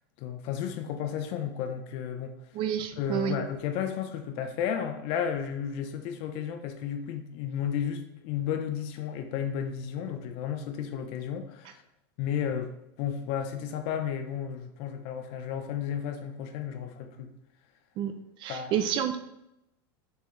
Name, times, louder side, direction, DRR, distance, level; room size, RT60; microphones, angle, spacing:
voice 1, 0.2-2.3 3.0-11.8 12.2-17.3 18.5-18.8, left 8 dB, 50° left, 7 dB, 0.8 m, -33 dB
voice 2, 2.5-3.4 18.0-19.2, right 9 dB, 40° right, 8 dB, 0.6 m, -29 dB
6.7 x 4.5 x 3.3 m, 0.84 s
supercardioid pair, 135°, 12 cm